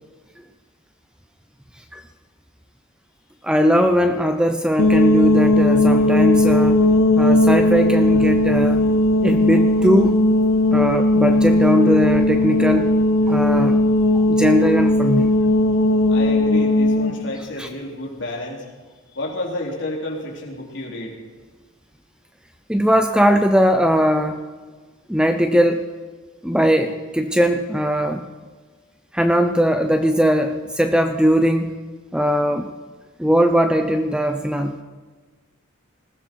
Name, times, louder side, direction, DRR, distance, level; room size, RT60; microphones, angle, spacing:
voice 1, 3.4-6.8 7.2-8.8 9.2-10.2 10.7-12.9 13.3-13.8 14.1-15.3 17.6-17.7 22.7-24.4 25.1-25.8 26.4-28.3 29.1-31.8 32.1-32.7 33.2-34.7, equal, 5° right, 7 dB, 0.6 m, -19 dB
sound 1, 4.8-17.1, left 1 dB, 80° left, 1.4 m, -17 dB
voice 2, 16.1-18.7 19.1-21.1, left 1 dB, 55° left, -2 dB, 3.9 m, -30 dB
20.0 x 15.0 x 4.7 m, 1.4 s
head